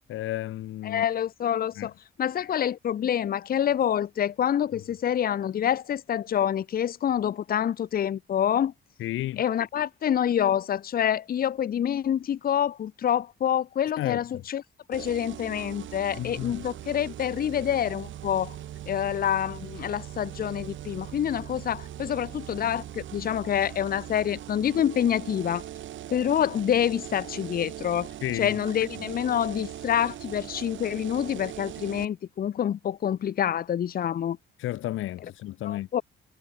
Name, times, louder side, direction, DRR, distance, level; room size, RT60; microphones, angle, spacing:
voice 1, 0.1-1.1 1.8-1.9 9.0-9.4 14.0-14.4 16.1-16.6 28.2-28.6 29.0-29.1 34.6-35.9, left 14 dB, 85° left, 2.6 m, -32 dB
voice 2, 0.8-1.9 2.2-8.7 9.4-14.6 14.9-18.6 18.9-25.6 26.1-28.1 28.4-34.4 35.6-36.0, left 9 dB, 50° left, 0.7 m, -27 dB
sound 1, 14.9-32.1, right 12 dB, 75° right, 2.1 m, -40 dB
cardioid pair, 90°, 20 cm